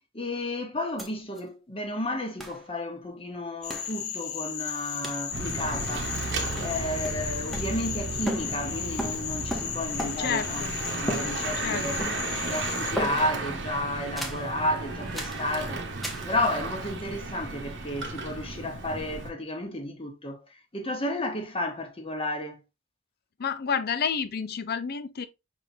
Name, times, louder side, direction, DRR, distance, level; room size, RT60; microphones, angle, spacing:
voice 1, 0.1-6.2 6.6-10.6 11.0-12.0 12.5-15.8 16.2-22.6, left 1 dB, 25° left, 1.0 m, -32 dB
sound 1, 1.0-1.1 1.4-1.5 2.4-2.6 3.7-4.0 5.0-5.3 5.9-6.3 6.6-8.0 8.3-10.4 11.1-11.7 12.0-12.5 13.0-13.5 14.2-14.5 15.1-15.5 16.0-16.3, equal, ahead, 0.7 m, -36 dB
Cricket / Frog, 3.6-12.9, left 8 dB, 90° left, 0.7 m, -35 dB
Bicycle / Mechanisms, 5.3-19.3, right 3 dB, 60° right, 0.9 m, -34 dB
voice 2, 10.2-10.8 11.6-12.1 23.4-25.3, left 7 dB, 50° left, 0.5 m, -30 dB
5.5 x 3.6 x 2.6 m
head